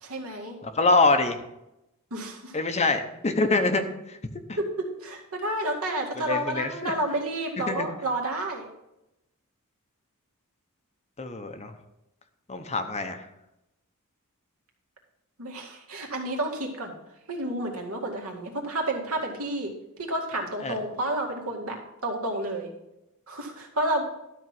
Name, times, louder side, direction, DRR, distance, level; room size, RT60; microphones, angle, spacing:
voice 1, 0.0-0.6 2.1-2.5 4.6-8.7 15.4-16.9 17.3-19.7 20.0-22.7 23.3-24.1, right 1 dB, 70° right, 1 dB, 2.2 m, -30 dB
voice 2, 0.6-1.4 2.5-4.2 6.2-6.9 7.7-7.9 11.2-11.7 12.5-13.2 20.6-20.8, left 3 dB, 30° left, 7 dB, 0.8 m, -25 dB
12.5 x 4.5 x 7.6 m, 0.88 s
head